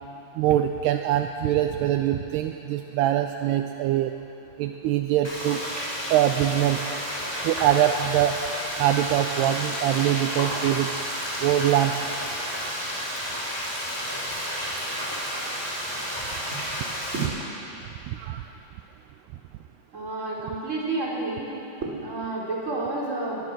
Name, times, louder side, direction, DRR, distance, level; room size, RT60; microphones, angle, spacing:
voice 1, 0.4-4.1 4.6-5.6 6.1-6.8 7.4-8.4 8.8-10.9 11.4-11.9 18.1-18.4, right 12 dB, 80° right, 6 dB, 2.6 m, -23 dB
Frying (food), 5.2-17.2, equal, 5° left, 6.2 m, -31 dB
voice 2, 19.9-21.5 21.8-23.4, right 2 dB, 20° right, -4 dB, 3.9 m, -30 dB
23.0 x 21.5 x 6.3 m, 3.0 s
omnidirectional pair, 4.9 m